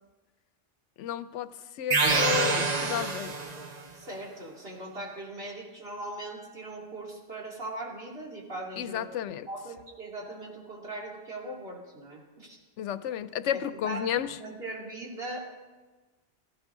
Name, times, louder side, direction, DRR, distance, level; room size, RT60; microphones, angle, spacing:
voice 1, 1.0-3.3 8.8-9.5 12.8-14.4, left 10 dB, 90° left, 14 dB, 0.9 m, -32 dB
sound 1, 1.9-3.8, right 4 dB, 40° right, 0.9 m, -26 dB
voice 2, 3.9-9.1 9.5-12.6 13.5-15.4, right 2 dB, 60° right, -3 dB, 2.9 m, -40 dB
16.0 x 14.5 x 3.7 m, 1.2 s
omnidirectional pair, 1.2 m